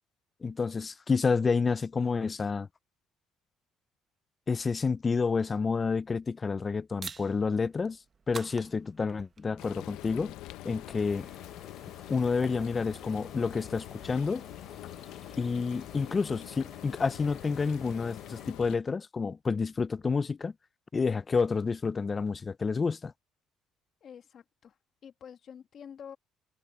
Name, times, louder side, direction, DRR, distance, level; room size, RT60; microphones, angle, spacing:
voice 1, 0.4-2.7 4.5-8.0 8.3-10.3 10.6-11.3 12.1-14.4 15.4-20.5 20.9-23.1, left 4 dB, 25° left, 0.3 m, -29 dB
sound 1, 7.0-15.3, right 5 dB, 30° right, 0.8 m, -51 dB
Frying (food), 9.6-18.8, left 16 dB, 80° left, 0.7 m, -45 dB
sound 2, 11.0-18.5, left 1 dB, 10° left, 5.6 m, -54 dB
voice 2, 24.0-26.2, left 8 dB, 50° left, 1.4 m, -48 dB
cardioid pair, 115°, 0 cm